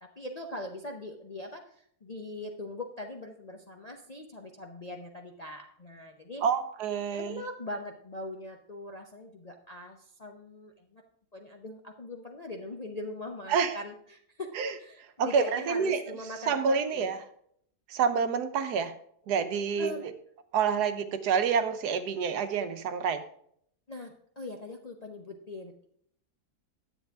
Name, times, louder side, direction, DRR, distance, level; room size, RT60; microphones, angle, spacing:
voice 1, 0.0-6.4 7.1-11.0 11.3-14.5 14.8-17.1 19.8-20.1 23.9-25.9, left 2 dB, 40° left, 2 dB, 0.5 m, -41 dB
voice 2, 6.4-7.4 13.5-13.8 14.5-14.7 15.2-16.0 16.5-17.2 17.9-18.9 19.3-19.9 20.5-23.2, right 6 dB, 80° right, 9 dB, 1.3 m, -27 dB
10.0 x 8.1 x 3.5 m, 0.66 s
omnidirectional pair, 1.7 m